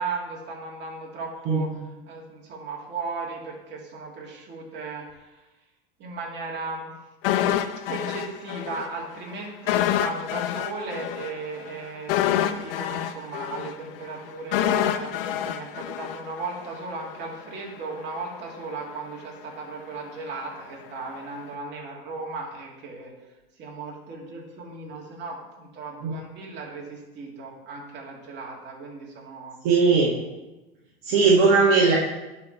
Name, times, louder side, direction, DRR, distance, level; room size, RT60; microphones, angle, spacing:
voice 1, 0.0-5.4 6.0-7.0 7.9-23.1 23.6-29.6, right 3 dB, 35° right, -2 dB, 2.4 m, -36 dB
sound 1, 7.2-8.9 9.1-9.3 9.7-16.7 17.0-17.2, left 11 dB, 65° left, 0.6 m, -26 dB
voice 2, 29.6-30.2 31.0-32.0, right 4 dB, 55° right, -3 dB, 1.6 m, -18 dB
10.5 x 4.4 x 4.6 m, 1.1 s
hypercardioid pair, 110°, 30 cm